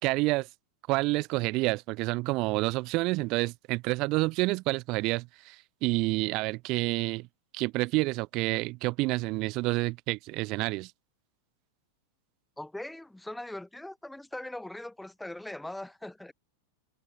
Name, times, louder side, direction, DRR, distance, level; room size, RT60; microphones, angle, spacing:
voice 1, 0.0-0.5 0.9-5.6 5.8-7.3 7.5-10.9, right 23 dB, 40° right, 1.8 m, -28 dB
voice 2, 12.6-16.3, left 1 dB, 5° left, 2.9 m, -40 dB
figure-of-eight pair, 90°, 0 cm